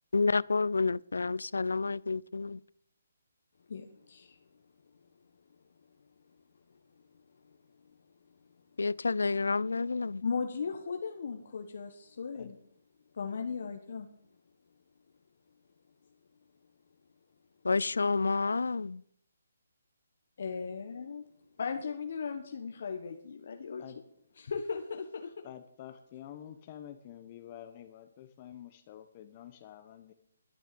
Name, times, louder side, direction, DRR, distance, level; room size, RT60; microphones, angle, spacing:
voice 1, 0.1-2.6 8.8-10.2 17.6-19.0, left 4 dB, 85° left, 0.4 m, -29 dB
voice 2, 3.7-4.4 10.2-12.6 13.1-14.1 20.4-21.2 21.6-23.8 24.4-25.4, left 5 dB, 60° left, 1.4 m, -37 dB
voice 3, 25.4-30.1, left 11 dB, 30° left, 0.9 m, -48 dB
12.5 x 9.2 x 6.9 m
hypercardioid pair, 155°, 0 cm